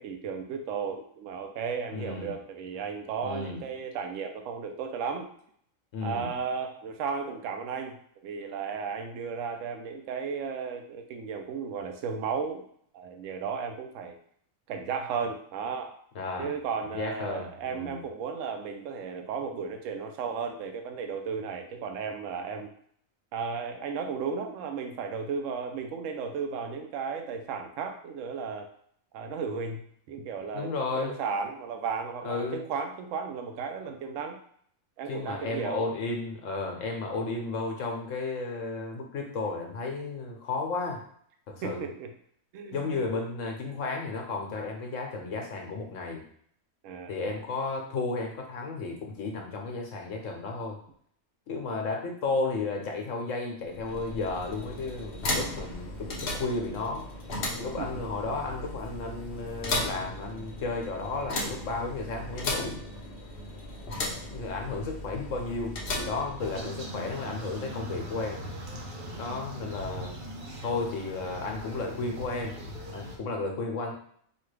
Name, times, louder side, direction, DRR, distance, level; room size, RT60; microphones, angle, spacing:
voice 1, 0.0-5.3 6.0-8.0 8.2-12.7 12.9-14.2 14.7-15.9 16.4-22.7 23.3-28.7 29.1-34.4 35.0-35.9 41.6-42.1 42.5-43.0 46.8-47.1 57.8-58.0, right 5 dB, 75° right, 5 dB, 1.0 m, -34 dB
voice 2, 1.9-2.3 3.2-3.6 5.9-6.3 16.1-16.5 16.9-18.0 30.5-31.2 32.2-32.6 35.1-41.0 41.5-41.9 42.7-46.2 47.1-50.8 51.5-57.1 57.5-62.8 64.2-68.4 69.1-70.2 70.6-72.6 72.9-73.9, left 3 dB, 75° left, 2 dB, 1.2 m, -33 dB
sound 1, 53.6-66.9, left 1 dB, 50° left, 0.9 m, -36 dB
sound 2, 66.4-73.2, equal, 45° right, 0.8 m, -40 dB
5.2 x 2.4 x 3.2 m, 0.64 s
omnidirectional pair, 1.4 m